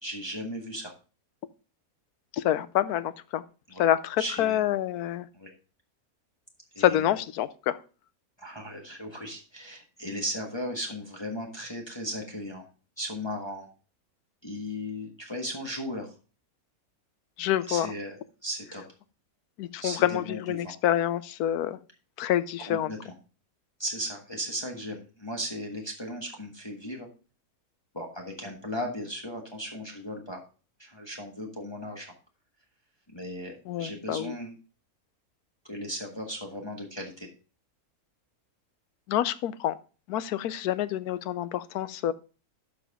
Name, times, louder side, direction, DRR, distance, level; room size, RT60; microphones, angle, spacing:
voice 1, 0.0-0.9 3.7-3.8 4.2-4.6 5.3-5.5 6.7-7.1 8.4-12.7 13.0-13.7 14.4-16.1 17.7-18.8 19.8-20.7 22.7-23.1 23.8-27.1 27.9-30.4 30.8-32.1 33.1-34.5 35.6-37.3, equal, 20° left, 0 dB, 1.3 m, -36 dB
voice 2, 2.3-3.4 3.8-5.3 6.8-7.8 17.4-17.9 19.6-21.8 22.2-22.9 33.7-34.4 39.1-39.8 40.1-42.1, left 12 dB, 80° left, 16 dB, 1.1 m, -27 dB
12.0 x 5.0 x 3.5 m, 0.35 s
omnidirectional pair, 1.6 m